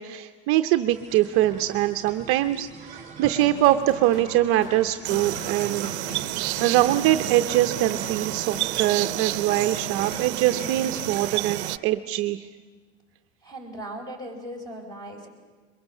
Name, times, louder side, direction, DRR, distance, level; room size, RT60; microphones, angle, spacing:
voice 1, 0.0-5.9 6.6-12.5, right 14 dB, 45° right, 8 dB, 0.7 m, -23 dB
sound 1, 0.9-11.7, right 5 dB, 25° right, 3.5 m, -44 dB
sound 2, 3.4-11.8, left 5 dB, 80° left, 1.8 m, -41 dB
sound 3, 5.0-11.8, right 19 dB, 85° right, 0.6 m, -30 dB
voice 2, 13.4-15.3, right 1 dB, 10° left, 4 dB, 4.3 m, -38 dB
23.0 x 21.5 x 7.2 m, 1.5 s
supercardioid pair, 150°, 32 cm